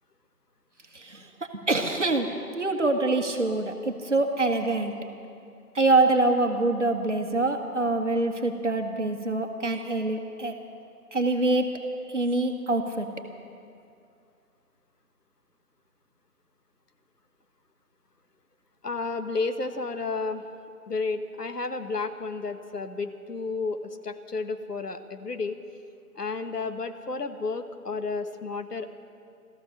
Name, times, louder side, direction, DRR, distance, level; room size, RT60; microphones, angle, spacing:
voice 1, 0.9-2.3 2.5-4.9 5.7-10.5 11.1-11.7 12.1-13.1, right 2 dB, 50° right, 4 dB, 1.5 m, -25 dB
voice 2, 18.8-20.4 20.9-25.6 26.1-29.0, left 4 dB, 85° left, 8 dB, 1.3 m, -32 dB
15.5 x 14.5 x 6.6 m, 2.4 s
figure-of-eight pair, 175°, 46 cm